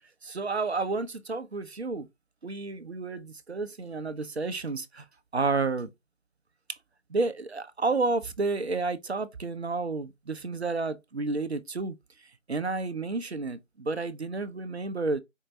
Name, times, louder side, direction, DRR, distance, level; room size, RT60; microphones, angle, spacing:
voice 1, 0.2-2.1 2.4-5.1 5.3-5.9 7.1-12.0 12.5-15.2, right 3 dB, 60° right, 0.5 m, -30 dB
4.4 x 2.1 x 3.7 m
figure-of-eight pair, 170°, 38 cm